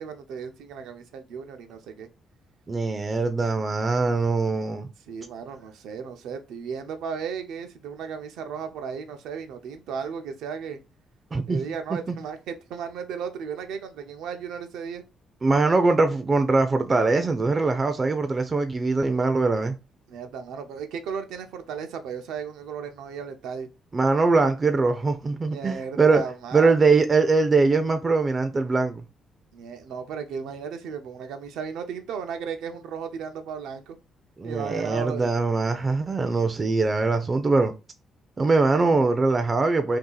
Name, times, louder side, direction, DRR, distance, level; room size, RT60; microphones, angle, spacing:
voice 1, 0.0-2.1 5.1-10.8 11.5-15.0 20.1-23.7 25.5-26.9 29.5-34.0 34.4-35.3, right 6 dB, 85° right, 0.5 m, -35 dB
voice 2, 2.7-4.9 11.3-11.6 11.9-12.1 15.4-19.8 23.9-26.2 26.5-29.0 34.4-37.7 38.4-40.0, right 3 dB, 30° right, 0.4 m, -22 dB
2.7 x 2.4 x 3.8 m
cardioid pair, 90°, 0 cm